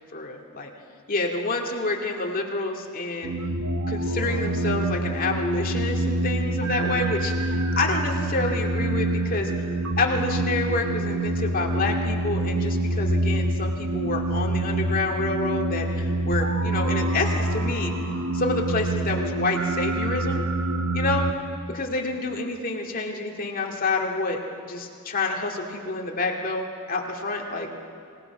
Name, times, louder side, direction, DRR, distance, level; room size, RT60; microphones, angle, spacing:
voice 1, 0.1-0.7 1.1-3.4 3.9-9.5 10.0-17.9 18.3-20.4 20.9-21.3 21.7-27.7, left 3 dB, 40° left, 1 dB, 2.2 m, -28 dB
sound 1, 3.2-21.3, right 2 dB, 65° right, 1.1 m, -26 dB
27.0 x 18.0 x 6.0 m, 2.4 s
head